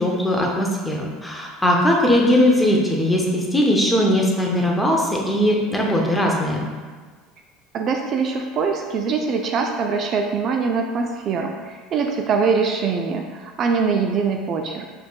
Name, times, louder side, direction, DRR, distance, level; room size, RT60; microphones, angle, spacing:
voice 1, 0.0-6.6, left 1 dB, 5° left, -1 dB, 0.7 m, -19 dB
voice 2, 7.7-14.9, right 5 dB, 45° right, 3 dB, 0.3 m, -23 dB
4.1 x 3.2 x 2.3 m, 1.5 s
supercardioid pair, 100°, 0 cm